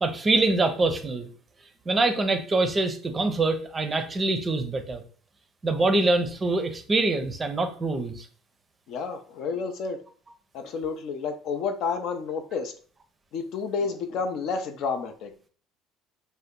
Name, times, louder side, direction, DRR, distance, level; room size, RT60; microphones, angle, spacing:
voice 1, 0.0-1.3 1.9-5.0 5.6-8.3, right 2 dB, 25° right, 7 dB, 0.5 m, -24 dB
voice 2, 8.9-10.0 10.5-12.7 13.3-15.3, left 5 dB, 60° left, 7 dB, 0.5 m, -30 dB
2.7 x 2.1 x 3.6 m, 0.42 s
supercardioid pair, 90°, 0 cm